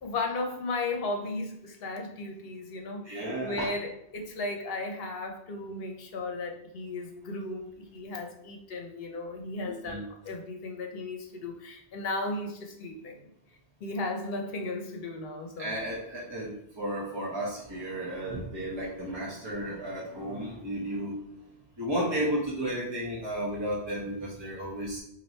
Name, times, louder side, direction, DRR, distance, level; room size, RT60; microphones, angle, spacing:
voice 1, 0.0-13.2 13.8-15.7, left 2 dB, 65° left, 3 dB, 0.9 m, -35 dB
voice 2, 3.0-3.7 9.6-10.0 15.6-21.2 21.8-25.0, right 1 dB, 25° right, -6 dB, 0.9 m, -33 dB
3.2 x 2.7 x 4.0 m, 0.78 s
omnidirectional pair, 1.1 m